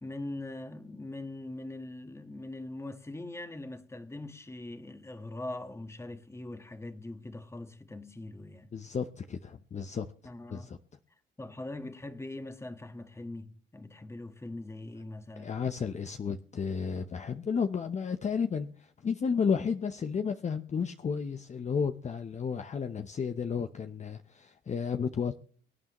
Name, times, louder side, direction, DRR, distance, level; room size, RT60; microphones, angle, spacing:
voice 1, 0.0-8.7 10.2-10.7 11.4-15.5, left 2 dB, 15° left, 1.4 m, -42 dB
voice 2, 8.7-10.1 10.5-10.8 15.4-25.4, left 6 dB, 35° left, 0.7 m, -32 dB
24.0 x 9.4 x 3.0 m
cardioid pair, 90°, 20 cm